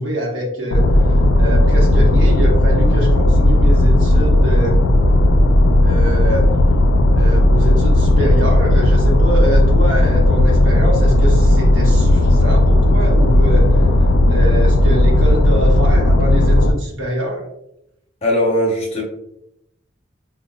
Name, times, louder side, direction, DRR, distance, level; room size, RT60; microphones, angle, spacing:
voice 1, 0.0-4.8 5.8-6.5 7.1-13.8 14.3-17.4, equal, 80° right, -1 dB, 1.0 m, -24 dB
sound 1, 0.7-16.7, left 1 dB, 85° left, 0.4 m, -13 dB
voice 2, 18.2-19.0, left 1 dB, 30° left, -2 dB, 0.8 m, -18 dB
4.8 x 2.2 x 2.2 m, 0.79 s
head